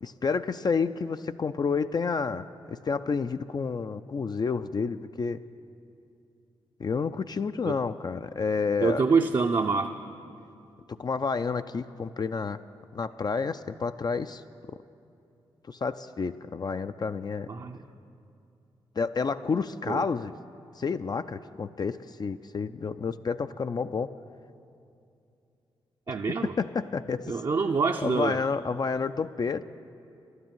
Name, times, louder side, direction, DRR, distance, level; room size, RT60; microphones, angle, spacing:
voice 1, 0.0-5.4 6.8-9.0 11.0-12.6 12.9-14.4 15.7-17.5 19.0-20.3 20.8-24.1 26.1-26.2 26.6-27.4 28.0-29.6, left 5 dB, 40° left, 10 dB, 0.4 m, -30 dB
voice 2, 8.8-9.9 17.5-17.8 19.9-20.1 26.1-26.5 27.3-28.4, right 4 dB, 40° right, 3 dB, 0.5 m, -26 dB
11.5 x 9.6 x 7.5 m, 2.6 s
supercardioid pair, 40°, 11 cm